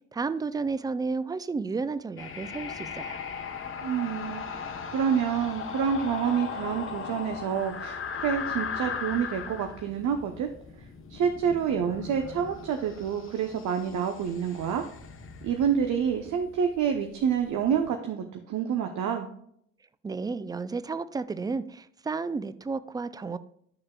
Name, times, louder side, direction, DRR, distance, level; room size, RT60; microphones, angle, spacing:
voice 1, 0.1-3.2 20.0-23.4, right 4 dB, 10° right, 14 dB, 0.4 m, -32 dB
sound 1, 2.2-18.0, left 6 dB, 30° left, 1.0 m, -38 dB
voice 2, 3.8-10.5 11.1-14.8 15.4-19.3, right 7 dB, 45° right, 5 dB, 0.9 m, -28 dB
11.5 x 6.4 x 2.3 m, 0.68 s
figure-of-eight pair, 50°, 40 cm